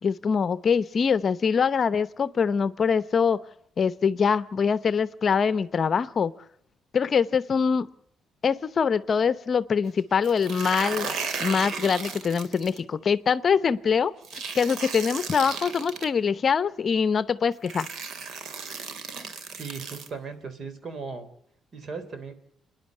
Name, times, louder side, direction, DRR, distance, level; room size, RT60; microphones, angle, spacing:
voice 1, 0.0-3.4 3.8-6.3 6.9-7.9 8.4-11.1 11.4-14.1 14.5-17.9, left 6 dB, 45° left, 15 dB, 0.8 m, -24 dB
sound 1, 10.2-12.8 14.2-16.1 17.1-17.2 17.6-20.1, right 5 dB, 75° right, 2.5 m, -35 dB
voice 2, 19.6-21.3 21.7-22.3, right 4 dB, 50° right, 10 dB, 3.7 m, -37 dB
27.5 x 10.5 x 9.4 m, 0.72 s
cardioid pair, 90°, 0 cm